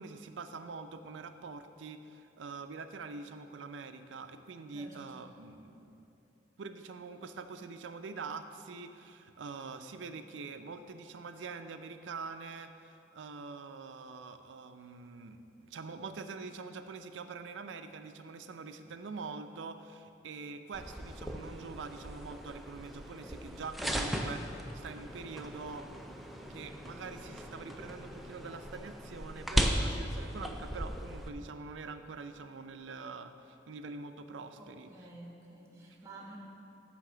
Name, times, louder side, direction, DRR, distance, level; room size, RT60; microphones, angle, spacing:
voice 1, 0.0-6.1 6.6-25.9 26.5-34.9, right 4 dB, 85° right, 9 dB, 0.5 m, -45 dB
sound 1, 20.7-31.3, equal, ahead, 0.4 m, -37 dB
voice 2, 34.5-36.4, right 2 dB, 15° right, -2 dB, 1.1 m, -51 dB
9.7 x 3.5 x 6.7 m, 2.9 s
head